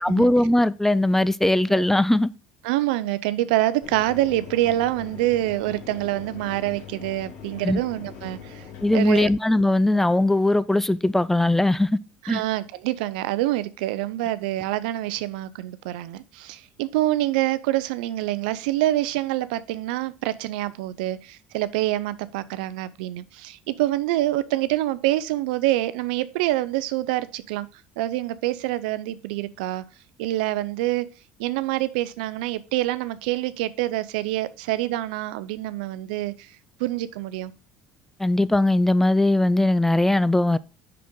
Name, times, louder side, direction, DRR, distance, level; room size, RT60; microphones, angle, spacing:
voice 1, 0.0-2.3 7.6-7.8 8.8-12.0 12.3-12.4 38.2-40.6, left 1 dB, 5° left, 0.4 m, -20 dB
voice 2, 2.6-8.6 8.9-9.3 12.2-27.7 28.0-29.8 30.2-31.1 31.4-37.5, right 15 dB, 80° right, 0.5 m, -26 dB
Mechanisms, 3.8-9.3, left 6 dB, 75° left, 2.7 m, -41 dB
5.9 x 5.9 x 3.7 m
supercardioid pair, 80°, 5 cm